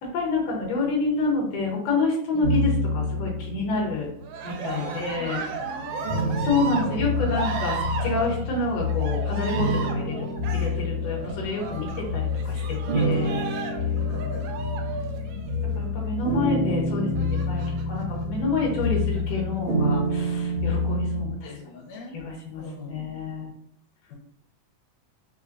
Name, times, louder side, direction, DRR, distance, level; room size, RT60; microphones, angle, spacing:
voice 1, 0.0-4.1 4.4-5.4 6.4-10.3 10.5-13.4 15.2-21.5 22.1-22.6 22.9-23.5, left 3 dB, 65° left, -3 dB, 1.8 m, -28 dB
sound 1, 2.4-4.1 4.8-21.3, left 1 dB, 65° right, 1.6 m, -28 dB
Cheering, 4.2-15.9 17.2-18.0 18.8-19.4, right 5 dB, 85° right, 2.1 m, -35 dB
voice 2, 4.7-7.0 11.7-11.8 12.3-12.4 13.7-14.6 16.2-16.4 21.4-22.2 22.6-23.1 24.1-24.2, left 5 dB, 85° left, -1 dB, 2.1 m, -40 dB
5.0 x 2.1 x 2.5 m, 0.68 s
omnidirectional pair, 3.7 m